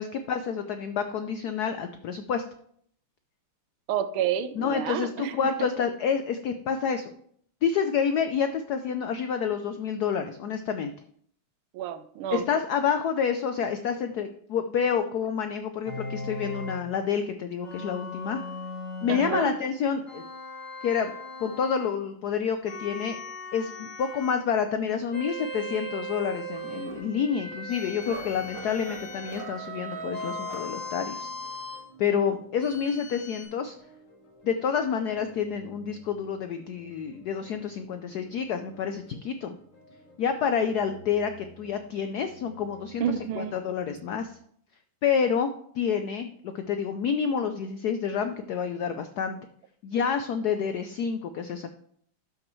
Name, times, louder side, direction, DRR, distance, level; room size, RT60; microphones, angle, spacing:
voice 1, 0.0-2.4 4.5-7.1 7.6-10.9 12.3-18.4 19.0-20.2 20.8-21.1 21.4-23.2 23.5-31.3 32.0-33.8 34.4-39.5 40.2-44.4 45.0-49.4 49.8-51.7, left 7 dB, 85° left, 8 dB, 0.8 m, -28 dB
voice 2, 3.9-5.3 11.7-12.4 19.1-19.6 43.0-43.6, right 9 dB, 80° right, 13 dB, 1.4 m, -29 dB
sound 1, 15.8-16.9 17.6-19.4 20.1-21.9 22.6-24.4 25.1-26.9 27.7-29.5 30.1-31.9 32.6-33.4, left 1 dB, 35° left, 3.3 m, -38 dB
sound 2, 26.5-31.3, right 1 dB, 55° right, 2.5 m, -40 dB
sound 3, 27.8-44.2, right 3 dB, 70° left, 2.6 m, -54 dB
12.0 x 6.2 x 3.1 m, 0.64 s
omnidirectional pair, 2.4 m